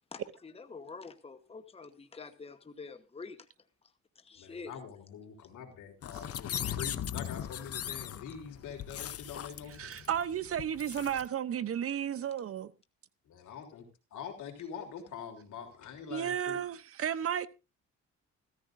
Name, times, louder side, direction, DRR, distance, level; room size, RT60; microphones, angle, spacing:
voice 1, 0.1-3.5 4.2-4.7, left 4 dB, 20° left, 1.1 m, -47 dB
voice 2, 4.4-10.1 13.3-13.9 14.1-16.7, left 7 dB, 80° left, 3.5 m, -44 dB
sound 1, 6.0-11.3, left 10 dB, 50° left, 0.8 m, -39 dB
voice 3, 9.8-12.7 16.1-17.5, right 9 dB, 50° right, 0.7 m, -33 dB
15.5 x 14.0 x 2.6 m
cardioid pair, 90°, 30 cm